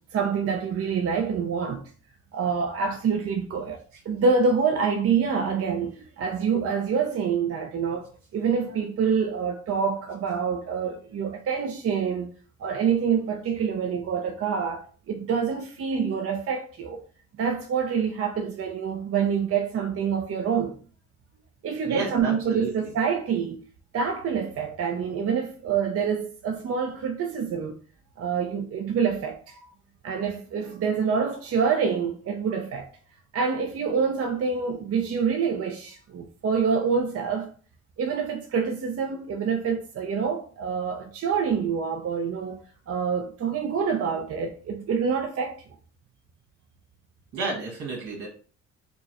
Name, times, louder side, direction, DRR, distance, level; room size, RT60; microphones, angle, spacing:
voice 1, 0.1-1.9 2.3-8.1 8.3-12.3 12.6-17.0 17.4-20.8 21.6-23.6 23.9-27.8 28.2-29.7 30.0-32.9 33.3-37.5 38.0-45.6, right 6 dB, 50° right, 0.6 m, -26 dB
voice 2, 21.8-22.7 47.3-48.3, right 3 dB, 85° right, 1.8 m, -31 dB
4.5 x 2.0 x 2.8 m
cardioid pair, 90°, 30 cm